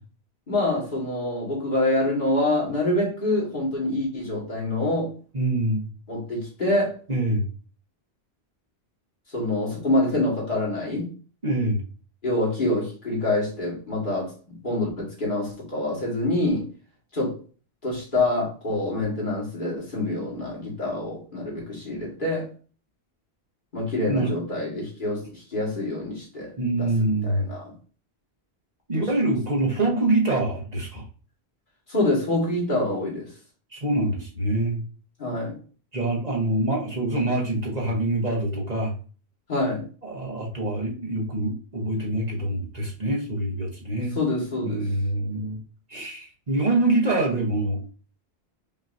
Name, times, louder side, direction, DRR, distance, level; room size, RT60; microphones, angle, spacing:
voice 1, 0.5-5.1 6.1-7.0 9.3-11.1 12.2-16.7 17.1-17.4 17.8-22.5 23.7-26.5 26.8-26.9 27.2-27.7 28.9-29.1 31.9-33.3 35.2-35.6 39.5-39.9 44.2-44.9, left 2 dB, 50° left, 1.9 m, -26 dB
voice 2, 5.3-5.9 7.1-7.4 11.4-11.8 24.1-24.3 26.6-27.5 28.9-31.0 33.7-34.8 35.9-38.9 40.0-44.2 44.6-45.6 45.9-47.8, right 2 dB, 40° right, 1.2 m, -25 dB
5.4 x 3.0 x 2.6 m
omnidirectional pair, 1.1 m